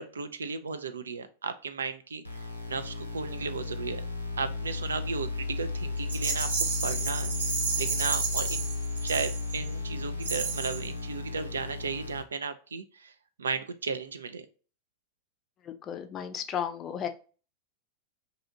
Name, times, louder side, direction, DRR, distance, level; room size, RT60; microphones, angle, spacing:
voice 1, 0.0-4.0 4.4-6.5 6.8-7.3 7.8-8.7 9.0-13.1 13.4-14.5, right 5 dB, 70° right, 10 dB, 0.3 m, -35 dB
sound 1, 2.2-12.2, left 3 dB, 85° left, 0.6 m, -34 dB
Rattle, 6.1-9.7 10.2-10.9, right 5 dB, 85° right, 1.2 m, -32 dB
voice 2, 15.7-17.1, left 9 dB, 30° left, 7 dB, 0.4 m, -34 dB
2.7 x 2.4 x 3.8 m, 0.38 s
figure-of-eight pair, 90°, 0 cm